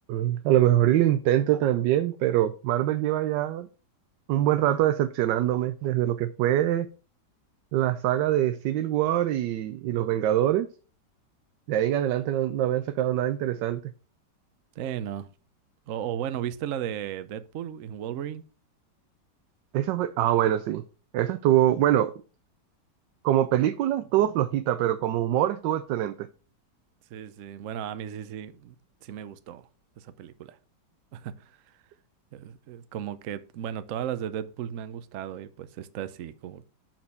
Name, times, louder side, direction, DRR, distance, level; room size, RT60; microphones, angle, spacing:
voice 1, 0.1-3.7 4.3-6.9 7.7-10.7 11.7-13.8 19.7-20.8 21.1-22.1 23.2-26.3, right 12 dB, 85° right, 1.2 m, -24 dB
voice 2, 14.8-15.3 15.9-18.4 27.1-28.7 29.0-29.7 30.0-30.6 31.1-31.5 32.3-36.7, right 10 dB, 65° right, 0.9 m, -35 dB
6.5 x 6.0 x 5.5 m
omnidirectional pair, 1.9 m